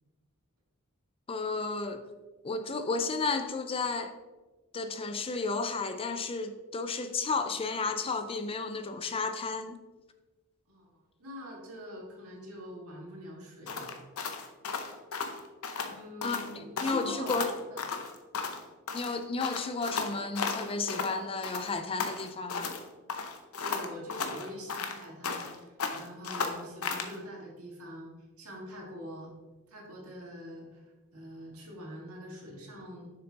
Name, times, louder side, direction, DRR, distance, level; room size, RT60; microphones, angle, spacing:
voice 1, 1.3-2.0 2.4-4.1 4.7-9.8 16.2-17.5 18.9-22.7, left 4 dB, 25° left, 8 dB, 0.4 m, -33 dB
voice 2, 10.7-14.0 15.8-17.8 23.6-29.3 29.7-30.8 31.1-33.1, equal, 70° right, -2 dB, 1.9 m, -44 dB
sound 1, 13.7-15.9 16.2-16.5 16.8-18.6 18.9-21.1 21.4-22.8 23.1-25.5 25.8-27.1, left 5 dB, 70° left, 0.7 m, -35 dB
6.9 x 6.7 x 2.9 m, 1.2 s
head